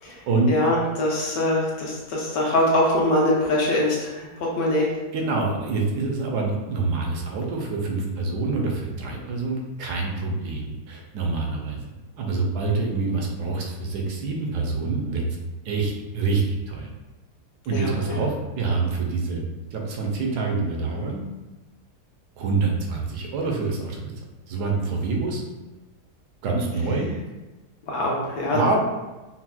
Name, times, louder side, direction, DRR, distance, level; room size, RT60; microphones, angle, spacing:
voice 1, 0.5-4.9 17.7-18.2 27.9-28.8, left 1 dB, 70° left, -3 dB, 1.1 m, -23 dB
voice 2, 5.1-11.8 12.2-15.2 15.6-16.9 17.7-19.4 19.7-21.2 22.4-24.1 24.5-25.4 26.4-27.1 28.5-28.8, right 3 dB, 80° right, 0 dB, 1.2 m, -26 dB
4.1 x 2.0 x 2.2 m, 1.1 s
omnidirectional pair, 1.8 m